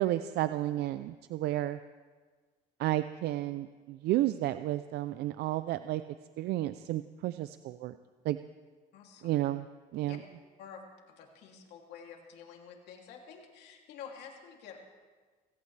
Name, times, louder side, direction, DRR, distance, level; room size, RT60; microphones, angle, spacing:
voice 1, 0.0-1.8 2.8-6.0 6.4-8.0 8.2-8.4 9.2-9.7 9.9-10.2, right 14 dB, 75° right, 12 dB, 0.5 m, -31 dB
voice 2, 8.9-9.3 10.0-10.2 10.6-10.8 11.1-14.8, left 7 dB, 80° left, 1 dB, 2.8 m, -49 dB
25.0 x 17.0 x 3.3 m, 1.4 s
cardioid pair, 110°, 17 cm